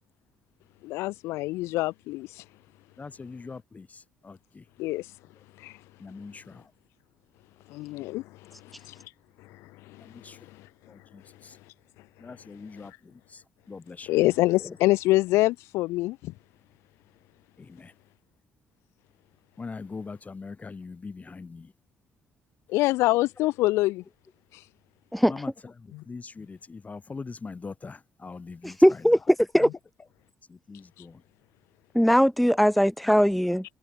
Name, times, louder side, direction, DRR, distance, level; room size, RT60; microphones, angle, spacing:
voice 1, 0.8-2.4 4.8-5.1 5.6-5.8 7.7-9.1 9.4-10.7 12.8-13.0 14.1-16.3 22.7-24.0 24.5-24.6 25.9-26.0, left 19 dB, 85° left, 1.9 m, -26 dB
voice 2, 3.0-4.6 6.0-6.7 10.0-10.4 10.9-11.6 12.2-14.1 14.6-14.8 17.6-17.9 19.6-21.7 25.2-25.5 25.8-29.0 30.5-31.2, left 4 dB, 35° left, 7.9 m, -42 dB
voice 3, 25.1-25.4 28.6-29.2 29.5-29.7 31.9-33.6, equal, ahead, 0.7 m, -20 dB
supercardioid pair, 65°, 4 cm